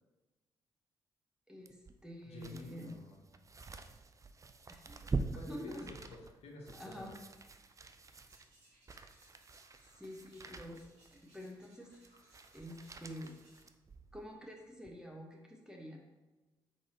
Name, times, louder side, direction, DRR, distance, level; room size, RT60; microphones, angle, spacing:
voice 1, 1.5-2.9 4.7-5.8 6.7-7.1 9.9-10.8 11.1-11.9 12.5-13.3 14.1-16.0, equal, 5° right, 0 dB, 1.2 m, -48 dB
sound 1, 1.7-14.3 14.8-14.9, right 3 dB, 25° right, 0.4 m, -45 dB
voice 2, 2.2-3.2 5.3-7.2, left 3 dB, 60° left, -1 dB, 0.9 m, -50 dB
sound 2, 8.0-13.6, right 1 dB, 75° right, 1.5 m, -67 dB
4.5 x 4.0 x 2.9 m, 1.1 s
hypercardioid pair, 40°, 12 cm